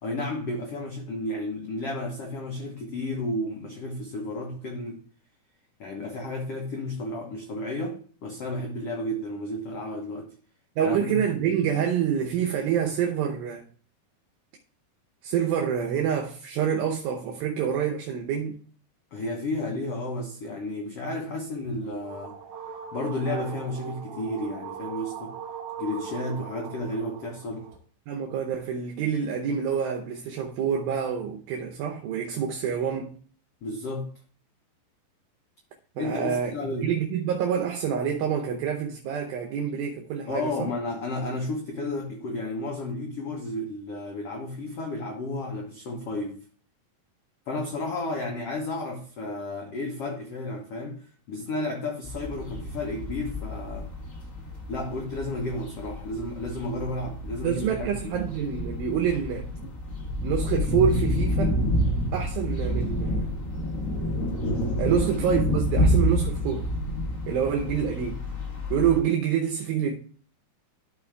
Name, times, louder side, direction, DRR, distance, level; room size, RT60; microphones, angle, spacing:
voice 1, 0.0-5.0 5.8-10.3 10.8-11.2 19.1-22.4 22.9-25.3 25.8-27.7 33.6-34.1 36.0-36.9 40.3-46.4 47.5-53.9 54.7-58.2 64.9-65.1, left 2 dB, 80° left, 1.3 m, -32 dB
voice 2, 10.8-13.7 15.2-18.6 28.1-33.1 36.0-40.7 57.4-59.5 60.2-61.6 62.1-63.3 64.8-66.7 67.3-68.2 68.7-70.0, right 8 dB, 75° right, 2.5 m, -27 dB
sound 1, 21.6-27.8, right 6 dB, 55° right, 3.8 m, -39 dB
sound 2, 52.0-69.0, equal, 40° left, 1.1 m, -28 dB
12.5 x 5.1 x 3.4 m
omnidirectional pair, 4.5 m